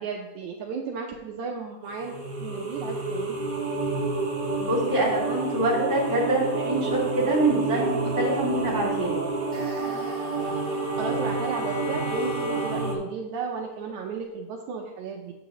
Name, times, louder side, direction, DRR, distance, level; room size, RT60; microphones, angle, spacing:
voice 1, 0.0-3.4 11.0-15.3, right 5 dB, 75° right, 1 dB, 1.9 m, -34 dB
sound 1, 1.9-12.9, right 3 dB, 50° right, 0.6 m, -29 dB
voice 2, 4.5-9.2, right 1 dB, 15° right, -5 dB, 2.3 m, -25 dB
Bowed string instrument, 9.3-13.1, left 4 dB, 90° left, 3.0 m, -42 dB
8.4 x 8.1 x 3.0 m, 1.1 s
omnidirectional pair, 3.6 m